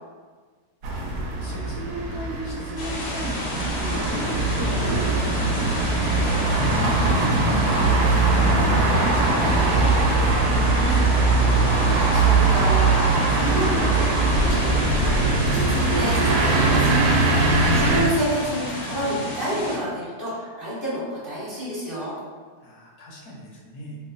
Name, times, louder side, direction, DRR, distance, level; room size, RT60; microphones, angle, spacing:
sound 1, 0.8-18.0, right 3 dB, 80° right, 1.1 m, -21 dB
voice 1, 1.4-6.1 6.7-11.2 22.6-24.0, equal, 75° left, -2 dB, 1.1 m, -35 dB
sound 2, 2.8-19.8, left 1 dB, 90° left, 1.4 m, -30 dB
voice 2, 11.8-17.0 17.4-22.1, equal, 35° right, -11 dB, 1.1 m, -30 dB
3.1 x 2.1 x 3.7 m, 1.5 s
omnidirectional pair, 1.8 m